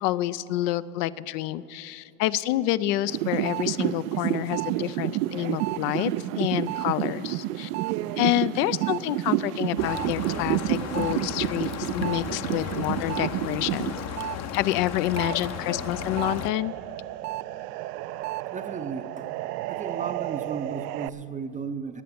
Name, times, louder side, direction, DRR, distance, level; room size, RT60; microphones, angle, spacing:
voice 1, 0.0-7.7 8.2-13.9 14.5-16.7, left 15 dB, 75° left, 16 dB, 0.6 m, -28 dB
sound 1, 3.1-14.4 14.7-21.1, right 15 dB, 80° right, 0.5 m, -30 dB
sound 2, 9.8-16.5, left 9 dB, 35° left, 0.6 m, -35 dB
voice 2, 18.5-19.3 19.7-22.0, right 5 dB, 20° right, 9 dB, 0.4 m, -35 dB
18.0 x 7.7 x 6.9 m, 2.7 s
supercardioid pair, 100°, 47 cm